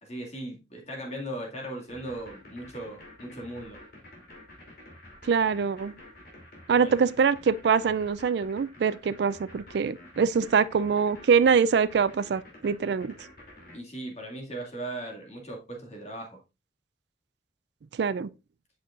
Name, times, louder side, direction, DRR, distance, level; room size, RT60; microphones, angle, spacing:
voice 1, 0.0-3.8 6.7-7.0 13.7-16.4, right 1 dB, 35° left, 2.1 m, -38 dB
sound 1, 1.9-13.8, left 1 dB, 50° left, 2.8 m, -49 dB
voice 2, 5.3-5.9 6.7-13.1 18.0-18.3, right 6 dB, 60° right, 0.3 m, -24 dB
8.1 x 6.2 x 2.5 m
head